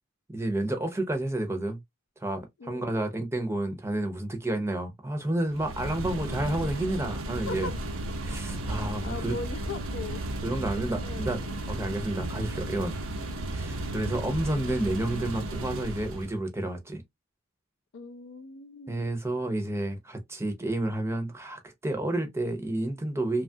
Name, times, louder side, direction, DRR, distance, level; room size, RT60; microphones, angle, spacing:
voice 1, 0.3-1.8 2.2-7.7 8.2-9.3 10.4-13.0 13.5-17.0 18.9-23.4, right 1 dB, 15° right, 0.6 m, -30 dB
voice 2, 2.6-2.9 7.5-7.7 9.0-10.3 11.0-11.3 17.9-19.1, left 3 dB, 65° left, 0.4 m, -39 dB
sound 1, 5.5-16.4, right 1 dB, 75° right, 0.6 m, -34 dB
3.0 x 2.3 x 2.6 m
head